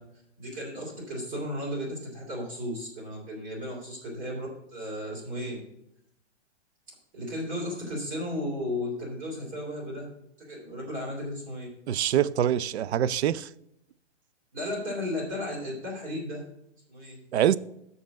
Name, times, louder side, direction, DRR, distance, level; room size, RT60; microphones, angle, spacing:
voice 1, 0.4-5.6 7.1-10.1 10.4-11.7 14.5-16.4 16.9-17.2, left 1 dB, 25° right, 3.1 m, -34 dB
voice 2, 11.9-13.5 17.3-17.6, right 10 dB, 70° right, 0.5 m, -24 dB
6.6 x 5.4 x 7.0 m
hypercardioid pair, 160°, 34 cm